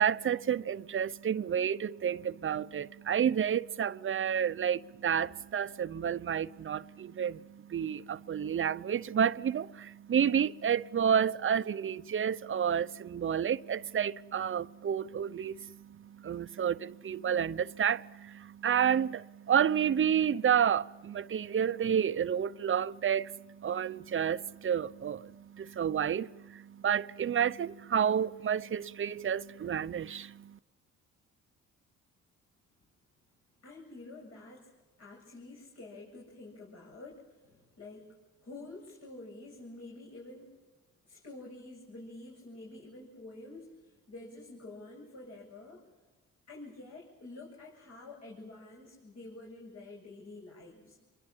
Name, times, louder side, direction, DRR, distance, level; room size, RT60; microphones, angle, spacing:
voice 1, 0.0-30.6, right 8 dB, 45° right, 0.8 m, -30 dB
voice 2, 33.6-34.7 35.0-38.1 38.4-40.5 41.0-45.9 46.5-51.0, left 2 dB, 55° left, 7.9 m, -48 dB
28.5 x 23.5 x 7.4 m
cardioid pair, 90°, 30 cm